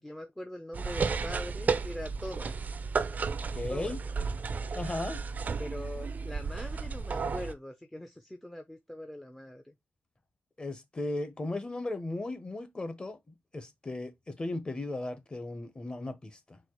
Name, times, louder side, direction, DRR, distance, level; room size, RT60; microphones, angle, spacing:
voice 1, 0.0-2.7 3.7-4.2 5.6-9.7, left 1 dB, 10° left, 0.6 m, -42 dB
sound 1, 0.7-7.5, right 5 dB, 40° right, 0.5 m, -33 dB
voice 2, 3.5-4.0 4.7-5.2 10.6-13.2 13.5-16.6, left 2 dB, 25° left, 1.0 m, -36 dB
4.4 x 2.4 x 4.5 m
cardioid pair, 90°, 4 cm